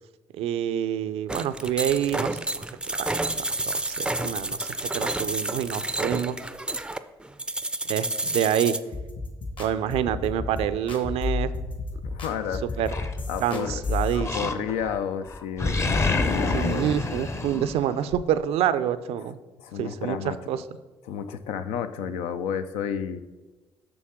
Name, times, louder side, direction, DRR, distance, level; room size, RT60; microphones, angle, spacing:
voice 1, 0.3-2.6 3.0-3.2 3.7-4.7 4.9-6.4 7.9-8.8 9.6-11.5 12.8-12.9 13.4-14.4 16.5-19.4 19.8-20.6, right 10 dB, 75° right, 13 dB, 0.4 m, -27 dB
sound 1, 1.3-8.8, right 2 dB, 10° right, 0.4 m, -30 dB
sound 2, 8.9-14.2, left 3 dB, 55° left, 1.4 m, -32 dB
voice 2, 12.0-12.6 13.3-13.7 14.1-16.9 19.6-20.4 21.1-23.2, left 8 dB, 85° left, 10 dB, 0.5 m, -31 dB
Animal, 12.9-13.7 14.2-15.0 15.3-18.2, left 3 dB, 25° left, 0.7 m, -27 dB
6.9 x 6.3 x 3.6 m, 1.2 s
supercardioid pair, 65°, 10 cm